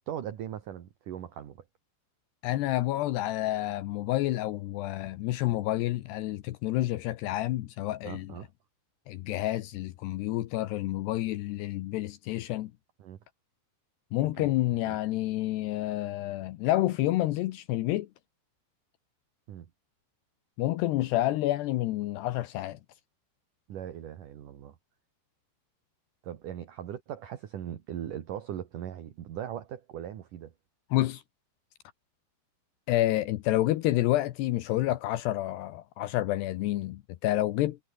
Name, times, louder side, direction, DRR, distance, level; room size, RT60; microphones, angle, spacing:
voice 1, 0.1-1.6 8.0-8.5 13.0-13.2 14.4-14.5 14.9-15.0 19.5-19.7 23.7-24.8 26.2-30.5, right 10 dB, 55° right, 2.9 m, -39 dB
voice 2, 2.4-8.3 9.1-12.7 14.1-18.1 20.6-22.8 30.9-31.2 32.9-37.8, left 15 dB, 75° left, 3.0 m, -29 dB
omnidirectional pair, 5.0 m